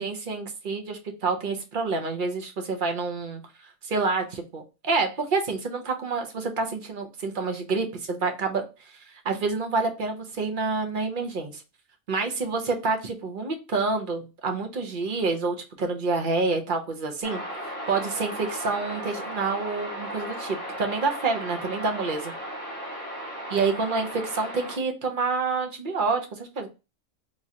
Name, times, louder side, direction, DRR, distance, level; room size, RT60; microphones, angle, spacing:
voice 1, 0.0-3.4 3.8-8.6 9.2-11.6 12.1-17.4 17.9-22.3 23.5-26.7, right 4 dB, 45° right, 4 dB, 0.8 m, -28 dB
sound 1, 17.2-24.8, equal, 5° left, 1.7 m, -36 dB
3.6 x 3.1 x 2.7 m, 0.28 s
omnidirectional pair, 1.4 m